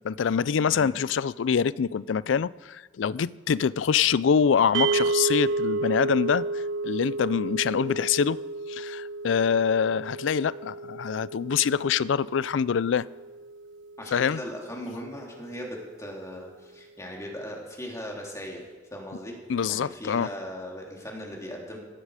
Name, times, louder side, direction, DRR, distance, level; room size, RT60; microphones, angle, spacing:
voice 1, 0.0-8.4 8.7-13.1 14.1-14.4 19.5-20.3, left 7 dB, 85° left, 0.4 m, -25 dB
sound 1, 4.7-15.0, right 3 dB, 70° right, 0.4 m, -32 dB
voice 2, 14.0-19.4 19.7-21.8, equal, 15° left, 3.2 m, -38 dB
16.5 x 15.5 x 4.9 m
head